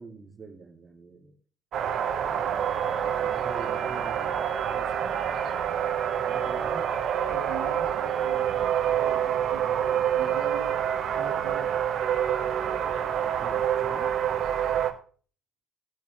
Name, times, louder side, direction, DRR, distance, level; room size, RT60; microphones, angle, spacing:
voice 1, 0.0-1.3 2.3-5.2 6.2-6.7 12.7-14.1, right 4 dB, 30° right, -1 dB, 2.3 m, -46 dB
sound 1, 1.7-14.9, right 9 dB, 55° right, 1.3 m, -27 dB
voice 2, 7.3-10.7 11.1-11.7, right 6 dB, 70° right, -2 dB, 2.3 m, -41 dB
16.5 x 8.9 x 3.3 m, 0.43 s
hypercardioid pair, 55°, 0 cm